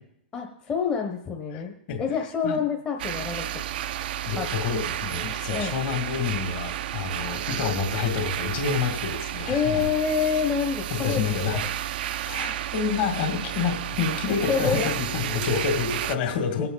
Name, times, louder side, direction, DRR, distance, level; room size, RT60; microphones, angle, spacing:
voice 1, 0.3-3.4 4.4-4.5 5.5-5.7 9.5-11.2 14.4-15.0 15.5-15.6 16.6-16.7, left 6 dB, 20° left, 0 dB, 1.1 m, -27 dB
voice 2, 1.5-2.0 2.4-2.6 4.3-9.9 10.9-11.6 12.2-16.7, left 6 dB, 50° left, 4 dB, 2.4 m, -28 dB
sound 1, 3.0-16.2, right 12 dB, 60° right, 0.6 m, -32 dB
19.0 x 7.9 x 4.1 m, 0.75 s
hypercardioid pair, 135°, 6 cm